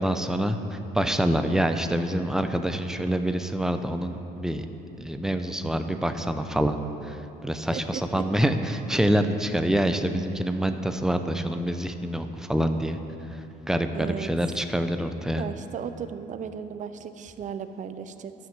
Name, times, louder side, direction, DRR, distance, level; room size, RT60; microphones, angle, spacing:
voice 1, 0.0-4.7 5.0-6.8 7.0-13.0 13.3-15.4, equal, 5° right, 7 dB, 0.6 m, -26 dB
voice 2, 7.7-8.2 13.9-14.3 15.4-18.3, right 7 dB, 45° right, 10 dB, 0.7 m, -35 dB
12.5 x 6.1 x 7.4 m, 2.9 s
cardioid pair, 110°, 17 cm